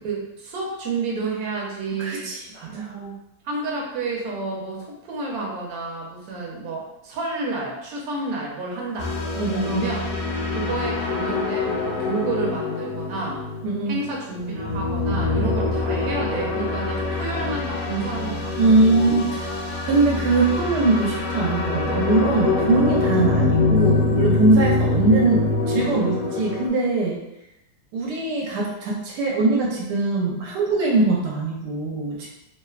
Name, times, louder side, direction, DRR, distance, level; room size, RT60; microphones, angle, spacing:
voice 1, 0.0-2.3 2.6-3.2 3.4-9.1 9.6-10.1 10.5-13.4 13.9-19.0 23.3-23.5, right 3 dB, 70° right, -2 dB, 1.1 m, -30 dB
voice 2, 2.0-2.9 9.4-9.8 13.6-14.0 18.6-27.2 27.9-32.3, right 3 dB, 85° right, -3 dB, 1.2 m, -22 dB
sound 1, 9.0-26.7, left 3 dB, 75° left, 1.1 m, -24 dB
3.0 x 2.0 x 2.3 m, 0.89 s
omnidirectional pair, 1.8 m